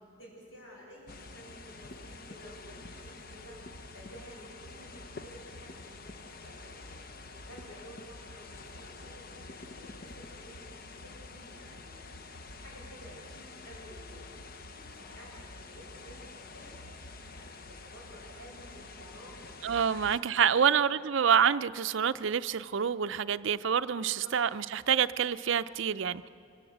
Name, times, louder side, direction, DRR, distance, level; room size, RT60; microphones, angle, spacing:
voice 1, 0.2-3.6 3.9-7.0 7.4-9.4 9.8-12.1 12.6-14.3 14.7-16.2 16.5-16.8 17.3-20.2 20.5-20.7 23.9-24.3, equal, 75° left, -4 dB, 6.7 m, -52 dB
sound 1, 1.1-20.2, left 3 dB, 45° left, 0.8 m, -47 dB
voice 2, 19.6-26.3, right 7 dB, 60° right, 12 dB, 0.5 m, -27 dB
25.0 x 16.5 x 8.1 m, 2.5 s
head